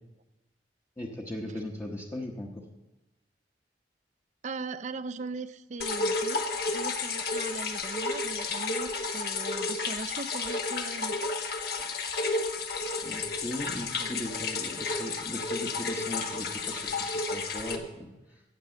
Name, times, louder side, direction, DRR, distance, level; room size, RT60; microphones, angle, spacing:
voice 1, 1.0-2.6 13.0-18.4, left 1 dB, 15° left, -2 dB, 1.0 m, -38 dB
voice 2, 4.4-11.2 14.0-14.2, right 3 dB, 40° right, 12 dB, 0.5 m, -39 dB
sound 1, 5.8-17.8, left 3 dB, 60° left, 1.2 m, -32 dB
17.0 x 6.0 x 7.1 m, 1.0 s
head